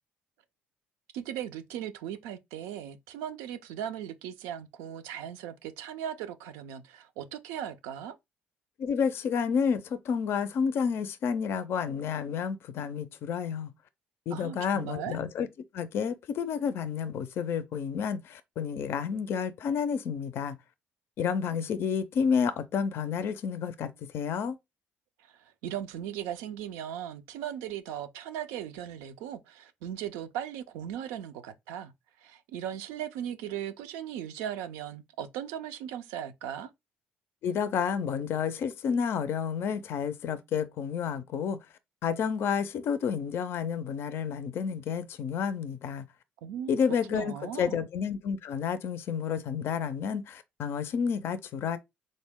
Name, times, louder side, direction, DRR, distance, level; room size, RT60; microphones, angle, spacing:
voice 1, 1.1-8.2 14.3-15.2 25.2-31.9 32.2-36.7 46.4-46.7 47.1-47.8, right 10 dB, 85° right, 0.4 m, -38 dB
voice 2, 8.8-13.7 14.3-15.5 15.7-20.6 21.2-24.6 37.4-41.6 42.0-46.0 46.7-51.8, left 7 dB, 65° left, 0.4 m, -30 dB
3.7 x 2.1 x 3.4 m
supercardioid pair, 70°, 4 cm